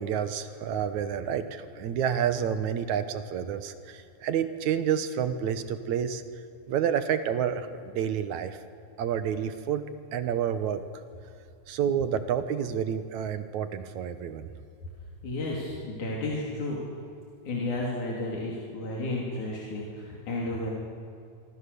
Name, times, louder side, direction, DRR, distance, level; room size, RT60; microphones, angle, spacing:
voice 1, 0.0-3.7 4.2-6.2 6.7-8.6 9.0-9.8 10.1-10.8 11.7-14.5, right 8 dB, 75° right, 10 dB, 2.5 m, -29 dB
voice 2, 15.2-16.8 17.5-20.7, left 2 dB, 80° left, -3 dB, 4.4 m, -32 dB
26.0 x 24.5 x 6.9 m, 2.4 s
omnidirectional pair, 3.4 m